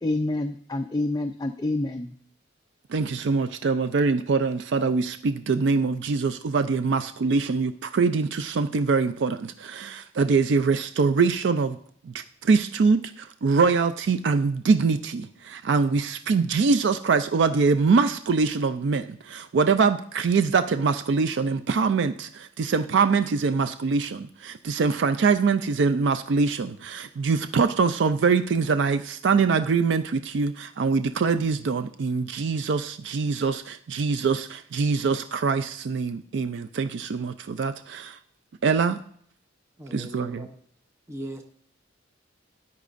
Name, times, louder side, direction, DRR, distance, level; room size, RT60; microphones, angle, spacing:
voice 1, 0.0-2.1, left 2 dB, 20° left, 5 dB, 0.4 m, -27 dB
voice 2, 2.9-11.8 12.0-38.2 38.6-39.0 39.9-40.5, right 4 dB, 65° right, 10 dB, 0.4 m, -24 dB
voice 3, 39.8-40.5 41.1-41.4, right 1 dB, 15° right, 3 dB, 0.7 m, -38 dB
13.0 x 9.4 x 2.5 m, 0.62 s
head